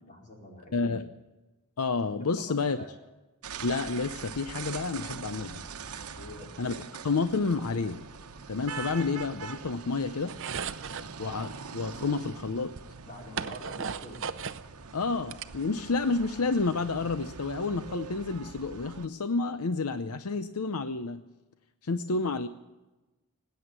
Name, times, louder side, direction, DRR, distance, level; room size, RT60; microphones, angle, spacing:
voice 1, 0.1-0.9 2.2-2.9 6.2-6.5 10.9-11.2 13.0-14.2, equal, 35° left, -1 dB, 4.5 m, -46 dB
voice 2, 0.7-1.1 1.8-2.8 3.6-5.6 6.6-6.7 7.0-8.0 8.5-10.3 11.2-11.5 11.7-12.7 14.9-21.2 21.8-22.5, left 3 dB, 80° left, 11 dB, 0.7 m, -30 dB
sound 1, 3.4-19.1, right 5 dB, 80° right, 1.0 m, -43 dB
sound 2, 10.3-11.1 12.3-12.4 12.8-14.7 15.0-16.1, right 6 dB, 60° right, 0.6 m, -36 dB
19.0 x 9.3 x 8.2 m, 1.1 s
head